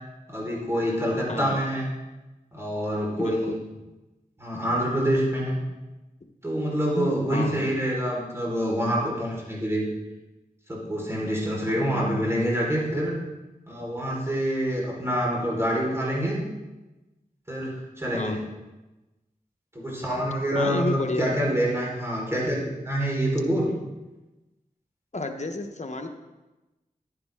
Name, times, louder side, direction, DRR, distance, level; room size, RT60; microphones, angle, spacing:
voice 1, 0.3-1.9 2.5-3.5 4.4-5.6 6.4-9.8 10.7-13.2 13.7-16.4 17.5-18.4 19.7-23.7, equal, 15° right, -4 dB, 4.3 m, -26 dB
voice 2, 1.3-1.6 3.2-3.6 7.0-7.7 11.9-12.2 18.1-18.4 20.5-21.5 25.1-26.1, left 2 dB, 50° left, 5 dB, 1.1 m, -31 dB
11.0 x 9.7 x 3.6 m, 1.1 s
cardioid pair, 40°, 15 cm